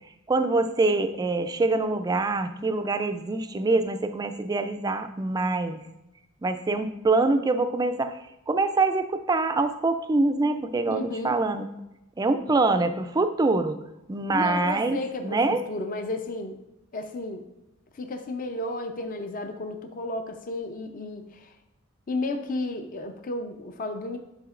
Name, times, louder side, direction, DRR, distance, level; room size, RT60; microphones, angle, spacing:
voice 1, 0.3-5.8 6.4-8.2 8.5-11.6 12.2-13.8 14.1-15.0 15.2-15.6, right 3 dB, 20° right, 8 dB, 0.3 m, -24 dB
voice 2, 10.9-11.3 14.3-16.6 16.9-17.5 17.9-21.5 22.1-24.2, left 2 dB, 40° left, 6 dB, 0.5 m, -33 dB
9.9 x 4.2 x 2.4 m, 0.93 s
head